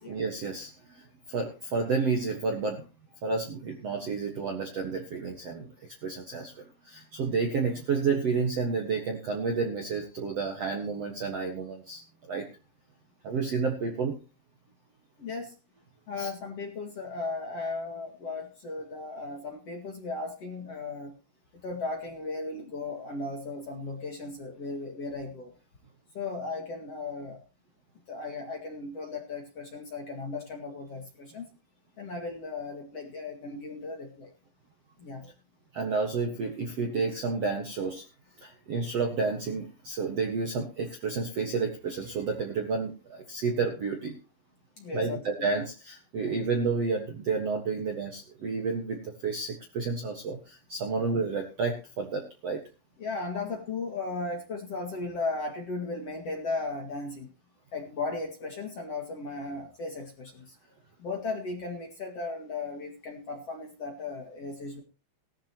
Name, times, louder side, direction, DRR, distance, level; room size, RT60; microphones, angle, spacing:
voice 1, 0.1-2.9 3.2-12.5 13.2-14.2 16.2-16.3 35.7-38.0 38.4-44.2 44.9-52.6, right 4 dB, 55° right, 2 dB, 1.9 m, -30 dB
voice 2, 15.2-15.5 16.1-21.1 21.6-25.5 26.1-27.4 28.1-31.5 32.0-34.3 35.0-35.3 44.8-45.7 53.0-57.3 57.7-60.6 61.0-64.8, left 3 dB, 45° left, 2 dB, 2.4 m, -36 dB
18.5 x 13.0 x 3.0 m, 0.32 s
omnidirectional pair, 5.2 m